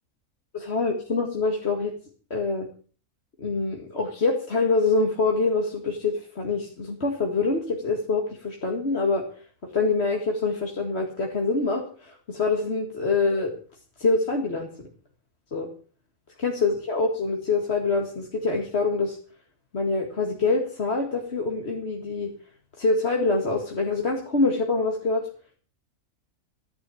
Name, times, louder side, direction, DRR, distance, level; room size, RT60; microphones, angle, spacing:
voice 1, 0.5-1.9 2.3-2.7 3.4-9.3 9.7-13.5 14.0-14.7 15.5-15.7 16.4-19.2 19.7-22.3 22.8-25.3, left 3 dB, 50° left, 1 dB, 2.3 m, -25 dB
14.5 x 11.0 x 7.1 m, 0.41 s
omnidirectional pair, 1.4 m